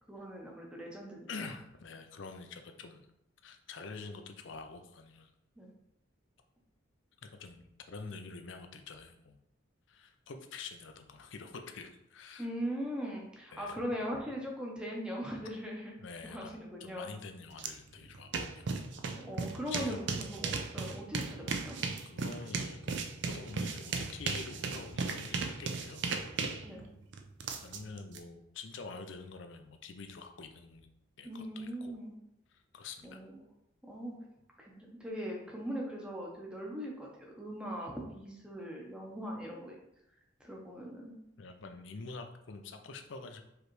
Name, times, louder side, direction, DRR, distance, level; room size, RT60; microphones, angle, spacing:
voice 1, 0.1-1.3 5.6-5.7 12.4-15.9 16.2-17.1 19.1-21.8 26.6-26.9 31.2-32.1 33.0-33.4 33.8-34.1 34.6-39.8 40.4-41.1, equal, 5° right, -2 dB, 0.8 m, -40 dB
voice 2, 1.3-3.1 3.4-5.3 7.4-9.4 9.9-12.5 13.5-13.8 16.0-18.7 19.7-20.1 20.8-20.9 22.1-22.8 23.3-26.1 27.6-30.9 31.2-31.9 32.5-33.2 41.4-43.4, left 4 dB, 65° left, 6 dB, 0.5 m, -46 dB
sound 1, 17.6-17.7 18.0-28.2, right 4 dB, 60° right, 0.4 m, -36 dB
4.9 x 3.2 x 3.1 m, 0.82 s
head